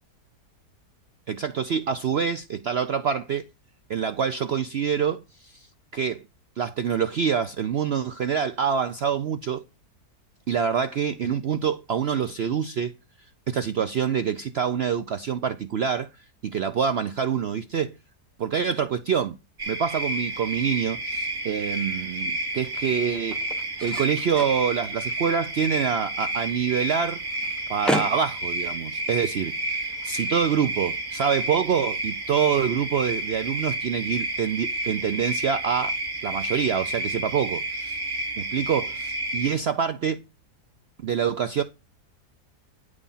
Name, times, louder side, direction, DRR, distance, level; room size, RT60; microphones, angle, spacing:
voice 1, 1.3-3.4 3.9-5.7 5.9-6.2 6.6-9.6 10.5-12.9 13.5-17.9 18.4-19.4 19.7-23.4 23.8-27.2 27.7-36.0 36.2-38.0 38.4-40.2 41.0-41.6, right 7 dB, 65° right, 0.6 m, -26 dB
sound 1, 19.6-39.5, right 1 dB, 45° right, 2.1 m, -30 dB
sound 2, 21.0-31.3, equal, ahead, 0.5 m, -37 dB
10.0 x 4.9 x 5.5 m
omnidirectional pair, 1.7 m